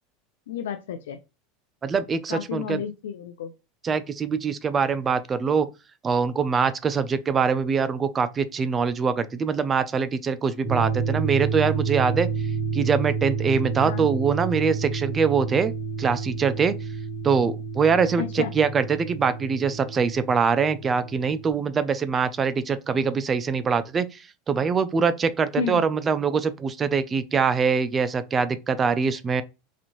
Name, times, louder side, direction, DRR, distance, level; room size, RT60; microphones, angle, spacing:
voice 1, 0.5-1.2 2.3-3.5 13.8-14.0 18.2-18.5 25.6-25.8, left 8 dB, 90° left, 0.4 m, -31 dB
voice 2, 1.8-2.8 3.8-5.7 6.0-12.3 12.7-15.7 16.0-16.7 17.2-29.4, right 5 dB, 20° right, 0.4 m, -23 dB
sound 1, 10.6-21.5, right 5 dB, 45° right, 1.6 m, -30 dB
4.1 x 2.6 x 3.0 m
supercardioid pair, 135°, 0 cm